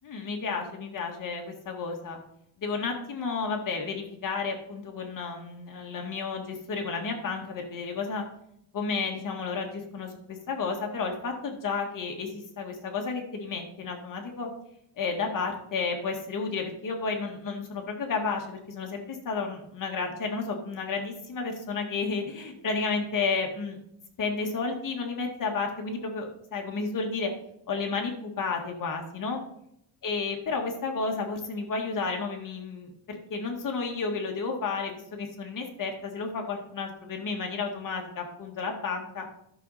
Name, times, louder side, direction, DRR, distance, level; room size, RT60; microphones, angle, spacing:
voice 1, 0.0-2.2 2.6-8.3 8.7-14.5 15.0-23.8 24.2-27.3 27.7-29.4 30.0-39.3, left 4 dB, 45° left, 2 dB, 2.0 m, -32 dB
12.5 x 6.4 x 4.2 m, 0.74 s
cardioid pair, 155°, 45 cm